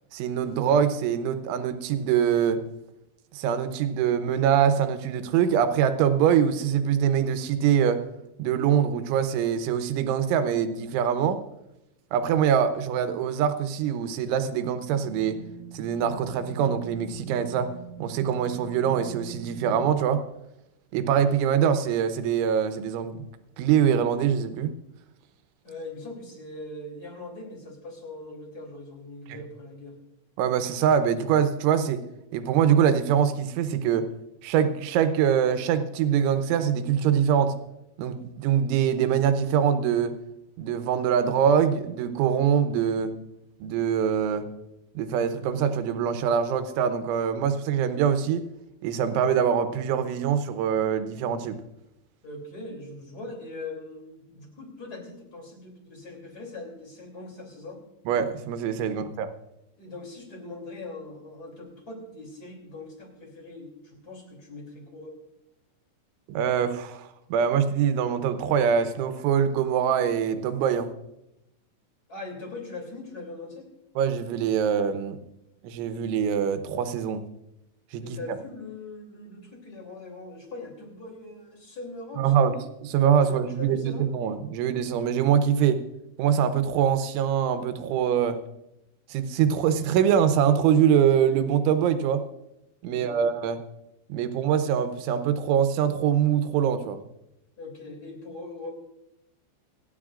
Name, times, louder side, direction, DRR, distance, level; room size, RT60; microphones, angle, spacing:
voice 1, 0.1-2.6 3.3-8.0 8.4-11.4 12.1-15.4 15.7-17.7 18.0-20.2 20.9-23.2 23.6-24.8 29.3-29.4 30.4-32.0 32.3-34.1 34.4-37.5 38.0-40.2 40.6-43.1 43.6-44.5 45.0-48.5 48.8-51.6 58.1-59.3 66.3-70.9 74.0-75.2 75.6-77.2 77.9-78.2 82.2-85.8 86.2-88.4 89.1-92.2 92.8-93.6 94.1-97.0, right 8 dB, 85° right, 9 dB, 3.3 m, -24 dB
sound 1, 14.9-19.9, right 6 dB, 60° left, 7.0 m, -43 dB
voice 2, 25.6-30.0 52.2-57.8 58.8-59.0 59.8-65.2 72.1-73.7 78.0-82.5 83.2-84.0 92.8-93.3 97.6-98.7, left 2 dB, 25° left, 1 dB, 2.7 m, -41 dB
27.5 x 10.0 x 2.5 m, 0.87 s
omnidirectional pair, 5.4 m